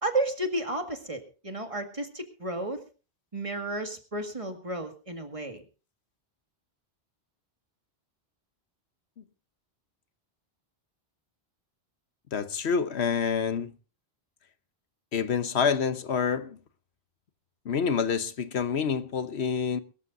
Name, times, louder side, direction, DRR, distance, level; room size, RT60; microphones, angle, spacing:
voice 1, 0.0-2.8 3.3-5.6, right 2 dB, 30° right, 2.0 m, -32 dB
voice 2, 12.3-13.7 15.1-16.6 17.6-19.8, left 6 dB, 80° left, 1.3 m, -27 dB
23.0 x 14.0 x 2.6 m
omnidirectional pair, 1.1 m